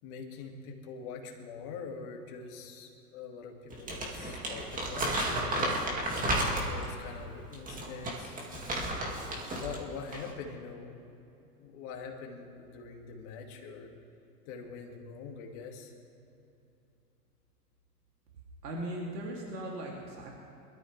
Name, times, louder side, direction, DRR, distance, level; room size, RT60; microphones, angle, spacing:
voice 1, 0.0-5.8 6.6-8.9 9.6-11.2 11.6-13.9 14.5-15.9, left 5 dB, 45° left, 2 dB, 2.4 m, -44 dB
Crumpling crinkling, 3.7-6.9 7.5-9.8 10.1-10.3, right 1 dB, 15° right, 2.3 m, -32 dB
voice 2, 18.6-20.3, right 1 dB, 80° right, -2 dB, 3.0 m, -38 dB
22.0 x 13.0 x 3.4 m, 2.8 s
hypercardioid pair, 120°, 47 cm